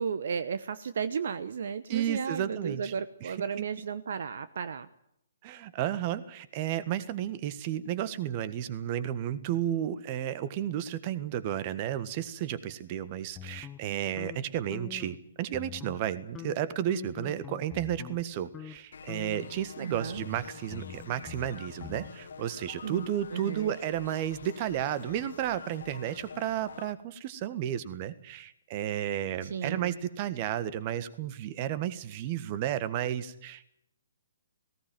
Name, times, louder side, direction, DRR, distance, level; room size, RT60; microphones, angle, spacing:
voice 1, 0.0-4.9 19.8-20.2 22.8-23.0 23.3-23.8 29.4-30.0, right 6 dB, 55° right, 13 dB, 1.0 m, -34 dB
voice 2, 1.9-2.9 3.2-3.3 5.4-33.6, right 11 dB, 35° right, 15 dB, 1.6 m, -32 dB
sound 1, 13.4-15.2 15.5-16.1 16.4-18.2 18.5-18.8 19.1-22.1, left 10 dB, 15° left, 0.8 m, -45 dB
sound 2, 18.9-26.9, left 6 dB, 60° left, 1.6 m, -48 dB
19.0 x 18.0 x 9.2 m, 0.76 s
figure-of-eight pair, 125°, 0 cm